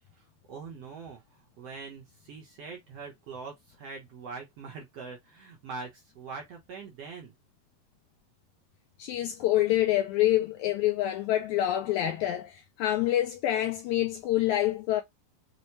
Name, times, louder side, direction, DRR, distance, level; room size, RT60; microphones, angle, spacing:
voice 1, 0.5-1.2 1.6-7.3, right 4 dB, 65° right, 1.7 m, -43 dB
voice 2, 9.0-15.0, left 13 dB, 85° left, 1.7 m, -26 dB
6.3 x 2.2 x 2.7 m
omnidirectional pair, 3.9 m